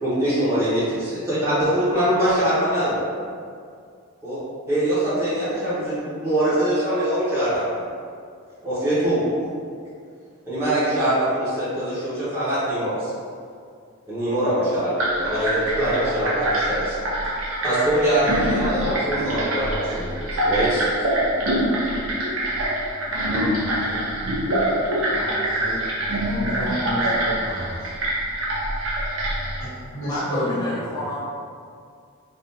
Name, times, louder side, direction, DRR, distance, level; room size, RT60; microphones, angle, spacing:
voice 1, 0.0-3.0 4.2-4.4 4.7-7.9 8.6-9.3 10.5-13.1 14.1-17.1 17.6-21.1, right 1 dB, 10° right, -13 dB, 1.0 m, -23 dB
sound 1, 15.0-29.6, right 1 dB, 70° right, 0.7 m, -25 dB
voice 2, 23.1-24.0 25.1-27.9 29.6-30.9, equal, 60° left, -10 dB, 1.1 m, -31 dB
voice 3, 30.1-31.2, equal, 20° left, -10 dB, 0.5 m, -29 dB
3.4 x 2.5 x 2.7 m, 2.2 s
head